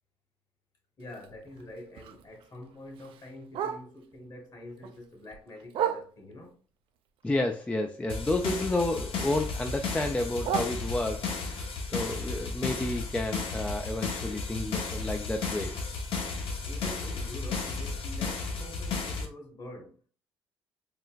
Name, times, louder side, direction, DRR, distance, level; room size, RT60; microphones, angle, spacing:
voice 1, 1.0-6.6 16.6-20.0, left 1 dB, 45° left, 1.3 m, -46 dB
Bark, 1.0-4.2 4.6-6.5 7.0-8.8 9.1-11.4 11.8-15.7 16.1-16.2 16.5-16.9 17.3-17.4 17.7-17.8 18.3-18.4, right 9 dB, 65° right, 0.4 m, -39 dB
voice 2, 7.2-15.7, left 2 dB, 10° left, 0.3 m, -31 dB
sound 1, 8.1-19.3, left 4 dB, 70° left, 0.8 m, -34 dB
3.8 x 2.1 x 2.3 m
supercardioid pair, 75°, 10 cm